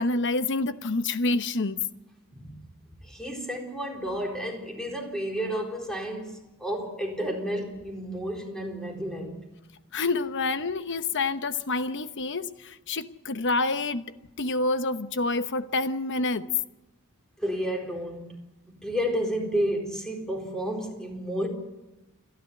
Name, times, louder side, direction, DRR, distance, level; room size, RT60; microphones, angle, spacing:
voice 1, 0.0-1.9 9.9-14.0 14.4-16.5, left 3 dB, 55° left, 1.0 m, -27 dB
voice 2, 3.0-9.4 17.4-18.4 18.7-21.5, equal, 5° left, 4.1 m, -31 dB
29.0 x 11.5 x 9.1 m
head